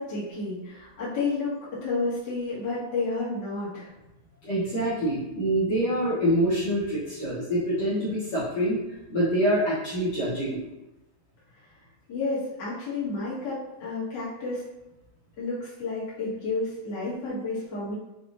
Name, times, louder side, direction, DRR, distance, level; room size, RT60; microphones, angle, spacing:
voice 1, 0.0-3.9 12.1-14.6 15.4-17.9, left 3 dB, 50° left, -8 dB, 1.4 m, -31 dB
voice 2, 4.4-8.8 9.1-10.6, right 1 dB, 65° left, -9 dB, 1.8 m, -25 dB
6.4 x 2.5 x 2.5 m, 0.98 s
omnidirectional pair, 3.8 m